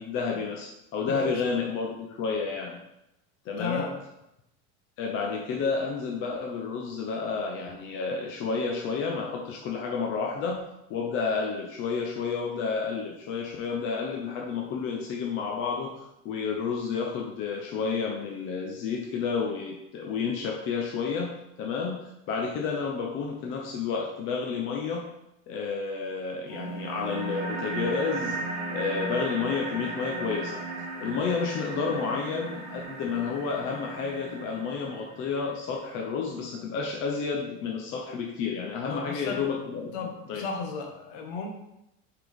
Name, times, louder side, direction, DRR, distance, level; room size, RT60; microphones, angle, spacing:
voice 1, 0.0-2.8 3.5-3.8 5.0-21.3 21.6-22.0 22.3-25.1 25.5-28.4 28.7-30.6 31.0-40.4, left 5 dB, 35° left, 0 dB, 0.7 m, -30 dB
voice 2, 1.0-1.4 3.6-3.9 38.9-39.4 39.9-41.5, left 4 dB, 60° left, 2 dB, 1.3 m, -34 dB
sound 1, 26.5-35.5, right 3 dB, 50° right, 1.3 m, -36 dB
5.8 x 4.9 x 3.5 m, 0.87 s
cardioid pair, 165°, 36 cm